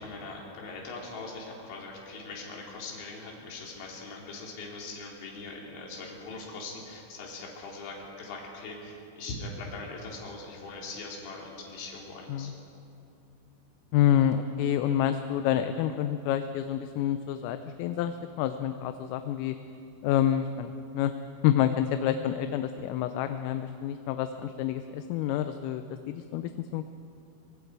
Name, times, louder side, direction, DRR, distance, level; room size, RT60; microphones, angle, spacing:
voice 1, 0.0-12.5, left 3 dB, 65° left, -2 dB, 5.2 m, -41 dB
voice 2, 13.9-19.6 20.0-21.1 21.4-26.9, left 10 dB, 80° left, 8 dB, 3.2 m, -28 dB
24.0 x 23.5 x 4.7 m, 2.6 s
omnidirectional pair, 6.0 m